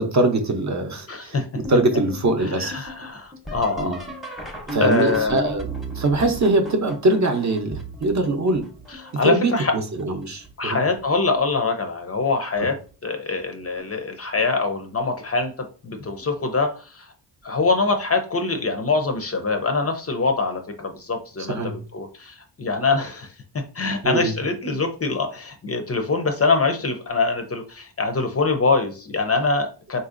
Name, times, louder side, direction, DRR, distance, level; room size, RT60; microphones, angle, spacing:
voice 1, 0.0-2.9 3.8-4.0 4.7-5.7 5.9-8.7 9.2-10.8 12.6-12.7 21.5-21.8 24.0-24.3, right 2 dB, 40° right, 5 dB, 0.7 m, -22 dB
voice 2, 1.1-1.5 2.6-4.0 4.8-5.4 9.2-9.7 10.6-17.1 17.4-30.0, left 3 dB, 35° left, 6 dB, 0.5 m, -24 dB
sound 1, 1.6-9.3 10.0-10.5 11.0-11.6 12.9-13.0 13.7-14.0 16.2-16.3 18.6-18.7, right 1 dB, ahead, 0.7 m, -36 dB
3.9 x 2.6 x 2.5 m, 0.37 s
wide cardioid pair, 100°, 44 cm